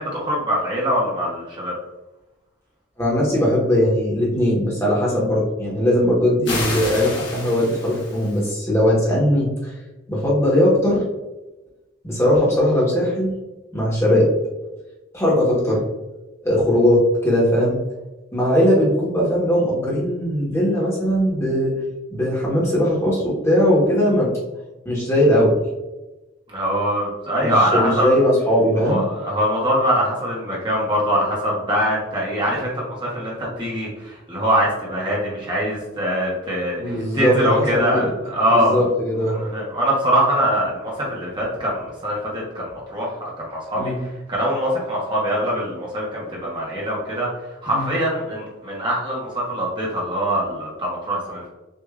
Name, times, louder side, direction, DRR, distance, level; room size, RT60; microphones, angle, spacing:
voice 1, 0.0-1.7 26.5-28.1 28.7-38.8 39.3-47.3 47.6-51.5, equal, 25° right, -5 dB, 0.9 m, -23 dB
voice 2, 3.0-9.7 10.1-11.0 12.0-13.3 13.7-14.3 15.1-15.8 16.4-17.8 18.3-21.7 22.1-24.3 24.8-25.6 27.4-29.0 36.8-38.1 38.5-39.4 43.8-44.0 47.7-47.9, equal, 15° left, -5 dB, 1.1 m, -19 dB
sound 1, 6.4-8.5, left 2 dB, 65° left, 1.5 m, -29 dB
6.4 x 2.5 x 2.4 m, 1.0 s
head